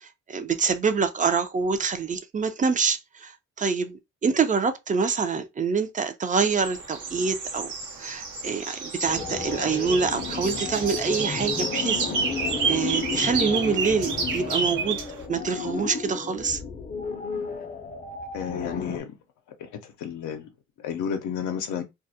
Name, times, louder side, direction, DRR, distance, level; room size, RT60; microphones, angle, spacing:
voice 1, 0.0-3.3 3.6-7.7 8.0-12.1 12.7-15.0 15.3-16.6, right 5 dB, 25° right, 0.4 m, -26 dB
sound 1, 6.5-15.2, right 5 dB, 80° right, 0.8 m, -30 dB
sound 2, 9.0-19.0, left 5 dB, 30° left, 0.5 m, -33 dB
voice 2, 18.3-19.1 19.6-20.5 20.8-21.8, left 8 dB, 75° left, 0.6 m, -31 dB
2.3 x 2.0 x 2.7 m
cardioid pair, 90°, 30 cm